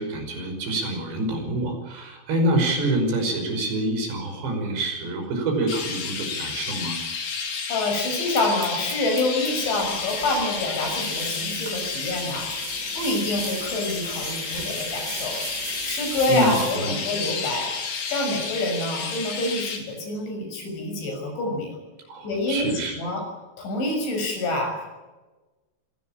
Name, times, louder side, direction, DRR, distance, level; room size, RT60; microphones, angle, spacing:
voice 1, 0.0-7.0 16.3-17.0 22.1-23.0, right 2 dB, 65° right, 4 dB, 7.5 m, -26 dB
Chirp tweet, 5.7-19.8, left 5 dB, 55° left, 4.8 m, -31 dB
voice 2, 7.7-15.4 15.8-17.7 18.1-21.8 22.2-22.7 23.0-23.3 23.6-24.9, left 2 dB, 70° left, 4 dB, 8.7 m, -27 dB
sound 1, 8.3-16.8, right 5 dB, 85° right, 7.2 m, -38 dB
25.5 x 17.5 x 8.8 m, 1.2 s
omnidirectional pair, 5.5 m